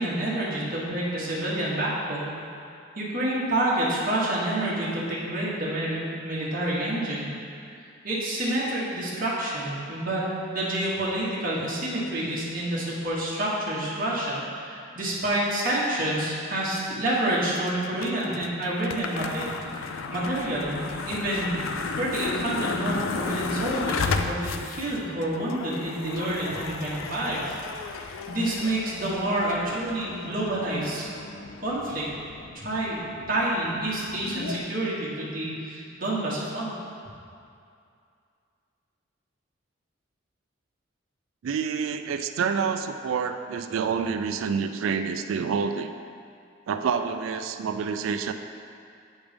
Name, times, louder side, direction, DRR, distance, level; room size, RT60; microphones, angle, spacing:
voice 1, 0.0-2.3 2.9-7.3 7.6-7.7 8.0-20.8 21.0-27.6 28.0-31.0 31.6-32.0 32.5-33.0 33.3-36.7, right 1 dB, 45° right, -7 dB, 1.4 m, -28 dB
sound 1, 17.5-34.6, left 4 dB, 80° left, 0.4 m, -35 dB
voice 2, 41.4-45.9 46.7-48.3, right 6 dB, 80° right, 8 dB, 0.3 m, -28 dB
8.2 x 3.5 x 5.1 m, 2.4 s
head